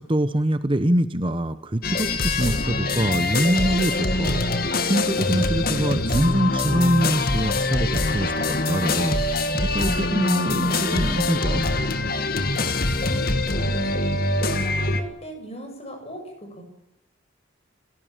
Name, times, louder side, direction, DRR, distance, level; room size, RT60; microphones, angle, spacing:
voice 1, 0.0-11.6, right 1 dB, 25° right, 11 dB, 0.9 m, -24 dB
sound 1, 1.8-15.0, left 2 dB, 50° left, 2.1 m, -24 dB
voice 2, 13.0-13.9 14.5-16.6, right 1 dB, 30° left, 4 dB, 7.5 m, -38 dB
29.5 x 17.5 x 7.4 m, 0.80 s
head